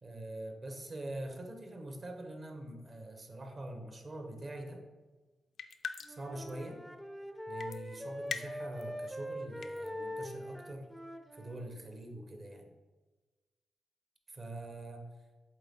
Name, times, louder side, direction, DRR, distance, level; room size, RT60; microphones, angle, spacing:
voice 1, 0.0-4.9 6.1-6.8 7.5-10.9 11.3-12.7 14.3-15.1, right 1 dB, 40° right, 4 dB, 1.1 m, -44 dB
sound 1, 5.6-6.2 6.5-6.6 7.6-7.8 8.3-8.8 9.4-9.9, left 6 dB, 70° left, 0.4 m, -39 dB
Wind instrument woodwind instrument, 6.0-11.7, equal, 5° right, 0.5 m, -43 dB
8.1 x 3.7 x 3.7 m, 1.2 s
cardioid pair, 80°, 0 cm